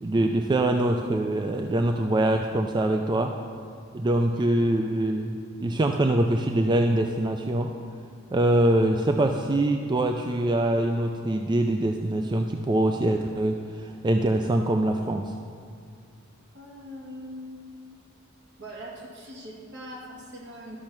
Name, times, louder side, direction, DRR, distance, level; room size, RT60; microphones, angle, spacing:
voice 1, 0.0-3.3 3.9-7.7 8.3-15.3, right 1 dB, 20° right, 4 dB, 0.4 m, -24 dB
voice 2, 16.5-17.6 18.6-20.8, equal, 60° right, -3 dB, 2.4 m, -41 dB
12.0 x 6.5 x 5.9 m, 2.3 s
head